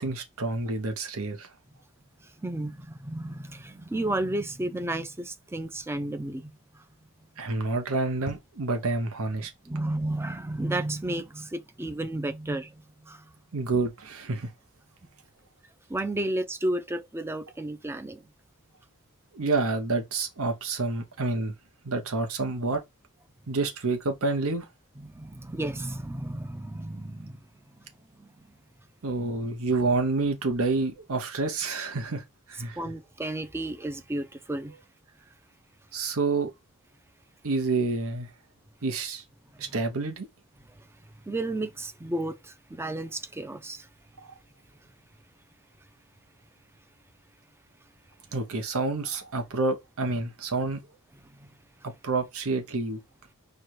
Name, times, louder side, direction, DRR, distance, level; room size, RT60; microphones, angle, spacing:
voice 1, 0.0-1.5 7.4-9.5 13.5-14.5 19.3-21.5 21.8-22.8 23.5-24.7 29.0-32.8 35.9-36.5 37.4-38.3 38.8-39.2 39.6-40.3 48.3-50.8 51.8-53.0, right 3 dB, 65° right, 0.9 m, -28 dB
voice 2, 2.4-6.8 9.6-13.3 15.9-18.2 25.0-27.4 27.8-27.9 28.1-28.3 32.8-34.7 39.6-39.7 41.2-43.9 51.2-51.6, right 1 dB, 10° right, 0.5 m, -33 dB
4.6 x 2.3 x 4.6 m
head